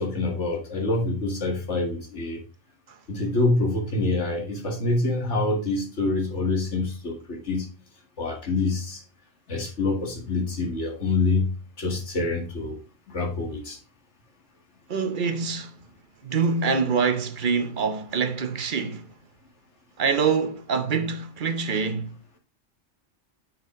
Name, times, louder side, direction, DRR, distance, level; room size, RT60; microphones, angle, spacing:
voice 1, 0.0-2.4 3.1-7.7 8.2-9.0 9.5-11.5 11.8-12.8 13.1-13.8, left 3 dB, 65° left, 2.1 m, -26 dB
voice 2, 14.9-15.7 16.2-19.1 20.0-22.1, right 5 dB, 45° right, 0.9 m, -25 dB
6.7 x 5.8 x 3.7 m
omnidirectional pair, 1.3 m